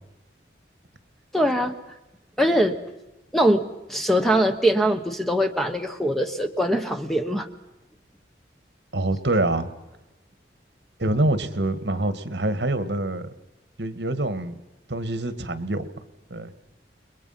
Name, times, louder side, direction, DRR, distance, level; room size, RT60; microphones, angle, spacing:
voice 1, 1.3-1.7 2.4-2.7 3.3-7.5, equal, ahead, 6 dB, 1.2 m, -22 dB
voice 2, 8.9-9.7 11.0-13.3 13.8-14.6 14.9-15.9 16.3-16.5, right 2 dB, 70° right, 12 dB, 1.8 m, -25 dB
30.0 x 22.0 x 5.8 m, 0.99 s
head